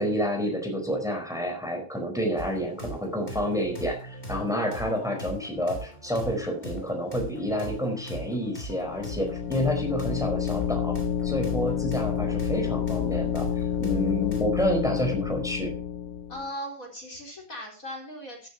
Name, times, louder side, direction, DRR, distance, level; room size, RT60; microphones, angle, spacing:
voice 1, 0.0-11.0 11.2-15.7, equal, ahead, 3 dB, 4.4 m, -29 dB
sound 1, 2.4-14.4, right 1 dB, 25° left, 3.6 m, -40 dB
sound 2, 8.7-16.5, left 8 dB, 65° left, 0.7 m, -29 dB
voice 2, 16.3-18.5, equal, 45° left, 0 dB, 4.4 m, -39 dB
14.0 x 13.5 x 2.8 m, 0.38 s
omnidirectional pair, 2.1 m